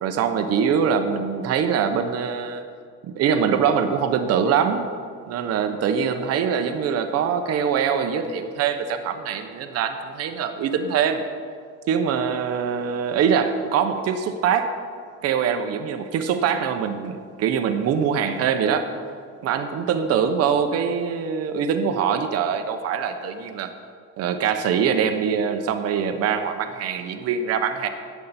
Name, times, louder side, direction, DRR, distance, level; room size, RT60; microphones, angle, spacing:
voice 1, 0.0-2.6 3.1-4.9 5.3-11.2 11.9-14.7 15.2-18.9 19.4-23.7 24.2-27.9, right 7 dB, 50° right, 7 dB, 1.0 m, -23 dB
17.5 x 8.4 x 4.3 m, 2.1 s
cardioid pair, 155°, 32 cm